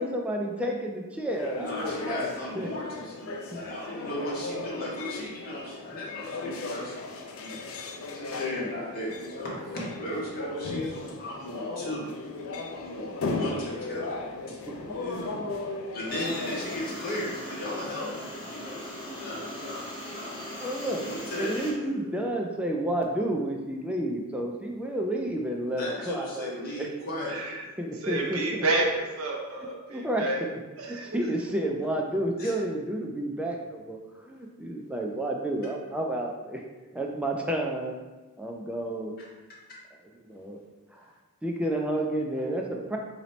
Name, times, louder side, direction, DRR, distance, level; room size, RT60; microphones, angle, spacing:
voice 1, 0.0-2.2 2.6-2.7 3.5-3.6 8.5-8.7 14.5-15.0 15.3-15.5 20.6-21.0 21.4-26.9 27.8-28.6 29.9-30.2 30.9-36.6 36.9-37.9 38.4-39.1 40.3-40.6 40.9-41.0 41.4-43.0, right 1 dB, 5° right, 0 dB, 0.3 m, -31 dB
sound 1, 1.3-16.8, left 3 dB, 70° left, 0.4 m, -36 dB
voice 2, 1.5-7.1 7.4-12.1 12.7-14.2 14.5-14.6 14.9-15.4 15.9-22.0 25.8-27.6 27.9-28.3 32.4-32.5, left 1 dB, 45° left, -5 dB, 1.2 m, -36 dB
sound 2, 16.1-21.7, equal, 20° left, 0.8 m, -39 dB
voice 3, 28.0-30.4 30.8-31.1, right 2 dB, 80° right, -1 dB, 0.7 m, -29 dB
3.0 x 2.8 x 4.2 m, 1.2 s
head